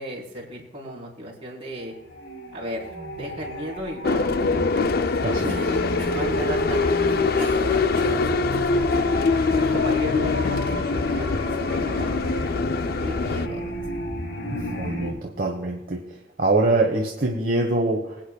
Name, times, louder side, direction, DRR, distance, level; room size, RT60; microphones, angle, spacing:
voice 1, 0.0-1.9 2.5-4.9 5.2-9.1 9.6-12.3 13.0-13.7, equal, 30° right, -4 dB, 4.2 m, -36 dB
sound 1, 1.8-15.1, equal, 80° left, 3.1 m, -34 dB
sound 2, 4.0-13.5, left 4 dB, 50° left, 0.4 m, -23 dB
voice 2, 5.2-5.7 14.5-16.0 16.4-18.2, right 2 dB, 50° right, 1 dB, 1.2 m, -24 dB
Cough, 5.5-6.3 6.9-8.7, right 1 dB, 10° left, 5.0 m, -40 dB
25.5 x 9.0 x 2.3 m, 0.96 s
head